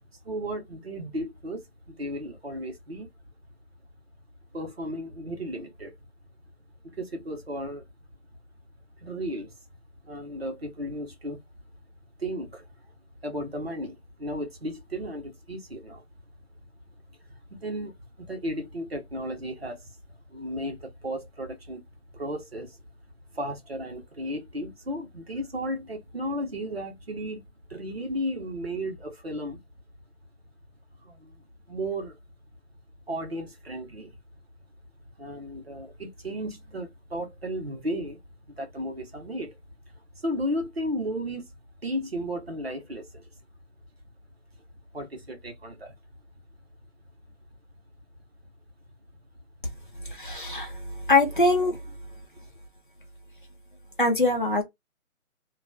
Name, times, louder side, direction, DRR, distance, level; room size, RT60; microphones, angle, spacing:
voice 1, 0.2-3.1 4.5-5.9 6.8-7.8 9.0-9.5 10.0-11.4 12.2-12.6 13.2-16.0 17.5-19.9 20.3-21.9 22.1-22.8 23.3-29.6 31.0-31.3 31.7-32.2 33.1-34.1 35.2-38.2 38.5-39.6 40.1-41.5 41.8-43.3 44.9-45.9, equal, 45° right, 0.9 m, -34 dB
voice 2, 50.0-51.8 54.0-54.6, left 2 dB, 35° left, 0.7 m, -23 dB
2.8 x 2.3 x 2.3 m
figure-of-eight pair, 170°, 44 cm